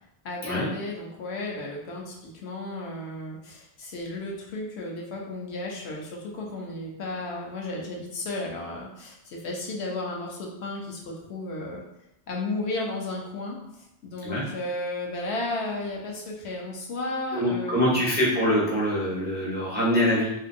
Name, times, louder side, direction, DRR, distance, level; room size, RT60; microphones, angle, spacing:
voice 1, 0.2-11.8 12.3-18.0, left 2 dB, 75° left, -1 dB, 0.9 m, -34 dB
voice 2, 17.3-20.3, equal, 15° right, -5 dB, 0.3 m, -24 dB
2.7 x 2.5 x 2.5 m, 0.84 s
omnidirectional pair, 1.1 m